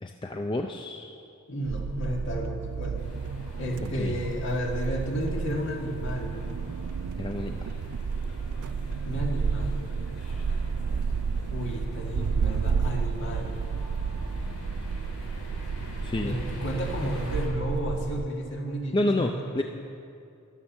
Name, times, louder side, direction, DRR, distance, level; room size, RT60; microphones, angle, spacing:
voice 1, 0.0-1.2 3.9-4.2 7.2-7.7 16.0-16.4 18.9-19.6, left 1 dB, 20° left, 4 dB, 0.4 m, -29 dB
voice 2, 1.5-3.0 3.6-6.4 9.1-9.7 11.5-13.6 16.2-19.6, equal, 55° left, 0 dB, 1.9 m, -32 dB
sound 1, 1.6-18.3, right 5 dB, 85° right, 0.4 m, -31 dB
sound 2, 3.0-17.5, left 1 dB, 85° left, 2.9 m, -43 dB
12.0 x 11.5 x 7.2 m, 2.5 s
head